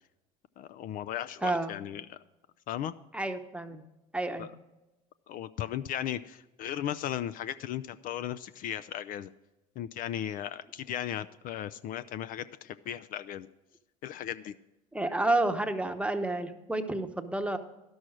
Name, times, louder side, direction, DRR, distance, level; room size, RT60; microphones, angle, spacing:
voice 1, 0.6-2.2 2.7-2.9 4.4-4.5 5.3-9.3 9.8-13.5 14.0-14.5, left 11 dB, 50° left, 15 dB, 0.4 m, -36 dB
voice 2, 1.4-1.7 3.1-3.8 4.1-4.5 14.9-17.6, right 2 dB, 5° right, 7 dB, 0.9 m, -30 dB
12.0 x 6.3 x 6.1 m, 1.0 s
hypercardioid pair, 80°, 18 cm